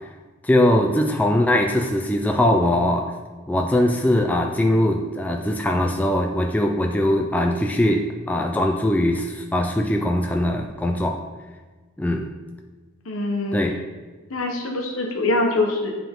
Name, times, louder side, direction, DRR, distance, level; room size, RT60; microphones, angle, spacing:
voice 1, 0.4-3.1 3.5-11.2 12.0-12.3 13.5-13.8, left 1 dB, 5° left, 2 dB, 0.3 m, -21 dB
voice 2, 13.0-13.6 14.3-15.9, left 2 dB, 70° left, 2 dB, 1.1 m, -23 dB
9.5 x 3.7 x 3.6 m, 1.4 s
head